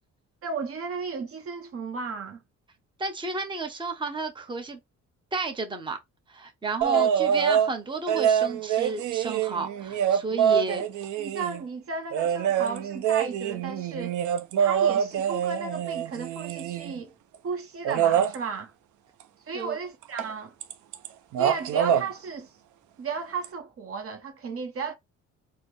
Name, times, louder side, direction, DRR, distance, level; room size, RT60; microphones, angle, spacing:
voice 1, 0.4-2.4 6.9-7.4 10.5-10.9 11.2-14.2 14.6-17.1 17.4-18.7 19.5-20.5 21.4-22.5 23.0-24.9, right 5 dB, 50° right, 0.8 m, -34 dB
voice 2, 3.0-4.8 5.3-6.0 6.3-10.8 19.5-19.8, right 3 dB, 15° right, 0.8 m, -32 dB
sound 1, 6.8-7.7 8.1-11.6 12.1-17.0 17.8-18.3 20.2-20.3 20.6-21.1 21.3-22.0 23.4-23.5, right 9 dB, 75° right, 0.6 m, -25 dB
4.2 x 2.1 x 3.2 m
cardioid pair, 90°, 30 cm